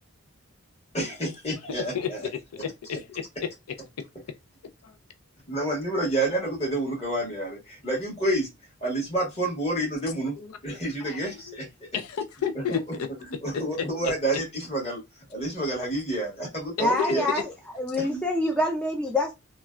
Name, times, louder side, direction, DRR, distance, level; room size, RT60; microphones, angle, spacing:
voice 1, 0.9-2.3 5.5-8.5 8.8-10.3 10.6-11.7 12.7-12.8 13.4-15.0 15.3-17.3 18.0-18.2, right 1 dB, 30° left, 1.5 m, -29 dB
voice 2, 1.9-3.8 4.8-5.0 10.4-11.2 11.5-11.6 11.9-13.1 13.5-13.9 16.8-17.4, left 7 dB, 90° left, 0.4 m, -32 dB
voice 3, 16.8-17.5 17.7-19.3, left 1 dB, 5° left, 0.3 m, -26 dB
3.1 x 2.2 x 2.3 m
head